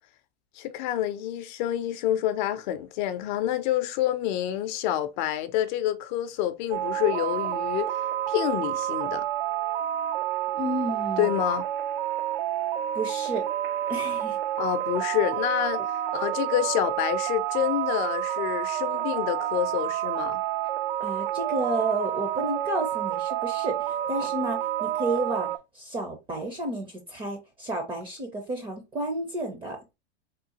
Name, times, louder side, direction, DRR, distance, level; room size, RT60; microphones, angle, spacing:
voice 1, 0.6-7.9 8.3-9.3 11.2-11.6 14.6-15.8 16.1-20.4, left 12 dB, 45° left, 0.5 m, -28 dB
sound 1, 6.7-25.6, right 12 dB, 65° right, 0.5 m, -29 dB
voice 2, 10.6-11.3 12.9-13.5 13.9-14.4 21.0-29.8, right 2 dB, 15° right, 0.5 m, -31 dB
3.7 x 2.3 x 2.8 m
supercardioid pair, 135°, 33 cm